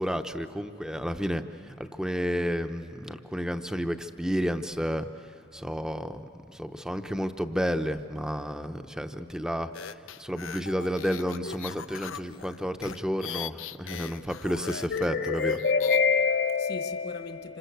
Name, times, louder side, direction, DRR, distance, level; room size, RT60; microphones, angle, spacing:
voice 1, 0.0-9.7 10.2-15.5, equal, 5° right, 8 dB, 0.8 m, -31 dB
sound 1, 9.7-16.0, left 8 dB, 90° left, 0.7 m, -40 dB
voice 2, 14.9-17.6, left 5 dB, 55° left, 7 dB, 1.2 m, -26 dB
27.5 x 26.0 x 8.1 m, 2.7 s
head